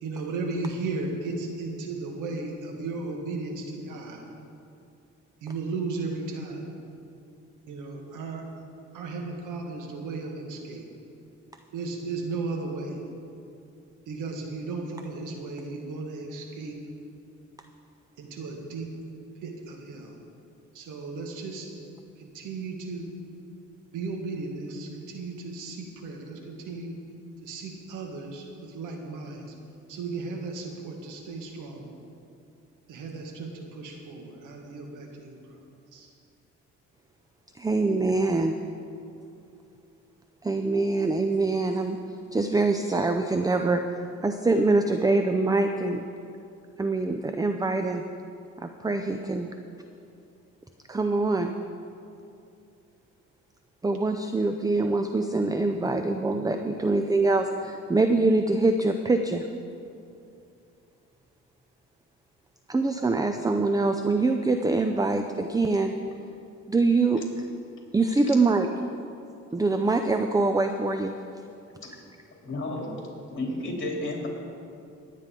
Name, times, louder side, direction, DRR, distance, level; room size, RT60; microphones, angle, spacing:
voice 1, 0.0-4.2 5.4-6.7 7.7-8.5 8.9-10.9 11.7-13.0 14.1-16.8 18.2-18.9 19.4-20.2 20.7-21.7 22.2-23.1 23.9-27.0 27.4-29.5 29.9-31.9 32.9-35.6 35.9-36.1, right 3 dB, 90° right, 2 dB, 1.7 m, -35 dB
voice 2, 37.5-38.5 40.4-42.0 42.3-43.8 44.2-46.0 46.8-48.0 48.6-49.5 50.9-51.5 53.8-59.5 62.7-65.9 66.7-67.2 67.9-68.7 69.5-71.1, right 3 dB, 10° right, 6 dB, 0.5 m, -24 dB
voice 3, 72.4-72.9 73.3-74.3, left 2 dB, 40° left, -2 dB, 3.6 m, -32 dB
19.0 x 9.3 x 3.8 m, 2.6 s
cardioid pair, 90°, 30 cm